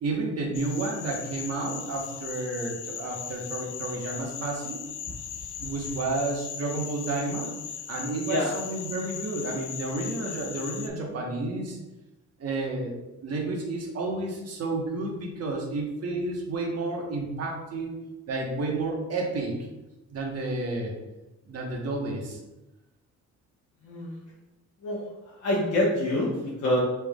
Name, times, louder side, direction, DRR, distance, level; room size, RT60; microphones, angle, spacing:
voice 1, 0.0-4.8 5.6-7.5 7.9-11.8 12.4-12.9 13.2-18.0 18.3-19.6 20.1-20.9 21.5-22.4, right 2 dB, 55° right, -1 dB, 1.4 m, -31 dB
sound 1, 0.5-10.9, left 8 dB, 90° left, 0.6 m, -38 dB
voice 2, 23.8-24.1 24.8-25.1 25.4-26.8, left 1 dB, 70° left, -7 dB, 1.3 m, -26 dB
6.0 x 3.6 x 2.5 m, 1.0 s
cardioid pair, 90°, 30 cm